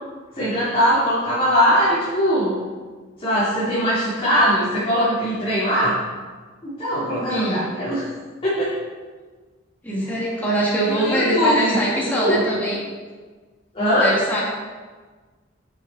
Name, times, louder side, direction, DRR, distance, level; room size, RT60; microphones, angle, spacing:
voice 1, 0.3-2.5 3.2-6.0 6.6-8.0 8.4-8.7 10.8-12.6 13.7-14.1, equal, 30° left, -12 dB, 2.7 m, -21 dB
voice 2, 7.3-7.6 9.8-12.8 13.9-14.4, right 1 dB, 10° left, -7 dB, 2.0 m, -23 dB
9.7 x 6.6 x 4.1 m, 1.4 s
head